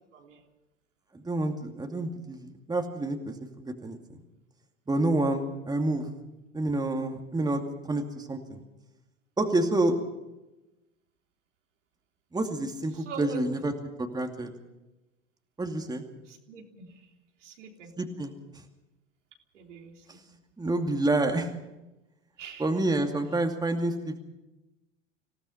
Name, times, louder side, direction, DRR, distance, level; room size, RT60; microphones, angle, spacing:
voice 1, 0.1-0.4 12.9-13.6 16.3-17.1 17.4-17.9 19.5-20.4 22.4-22.7, right 4 dB, 70° right, 2 dB, 3.5 m, -44 dB
voice 2, 1.1-4.0 4.9-6.1 6.5-7.6 7.9-8.6 9.4-10.0 12.3-14.5 15.6-16.0 18.0-18.3 20.6-21.5 22.6-24.2, right 2 dB, 10° right, 4 dB, 2.5 m, -28 dB
26.5 x 17.0 x 5.7 m, 1.0 s
figure-of-eight pair, 85°, 38 cm